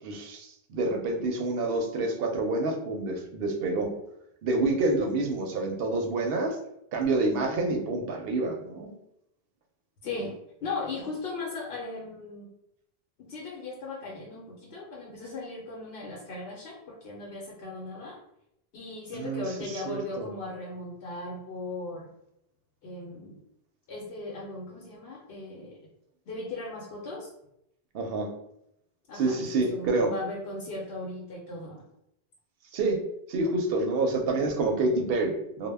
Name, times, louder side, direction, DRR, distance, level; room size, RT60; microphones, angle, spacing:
voice 1, 0.0-3.9 4.4-6.6 6.9-8.9 19.1-19.4 19.9-20.3 27.9-28.3 29.1-30.1 32.7-33.0 33.3-35.7, right 2 dB, 70° right, 3 dB, 0.7 m, -28 dB
voice 2, 10.0-12.5 13.2-18.2 18.7-22.1 22.8-23.4 23.9-25.8 26.3-27.3 29.1-31.8, left 2 dB, 75° left, -4 dB, 0.8 m, -37 dB
2.1 x 2.0 x 3.3 m, 0.78 s
omnidirectional pair, 1.0 m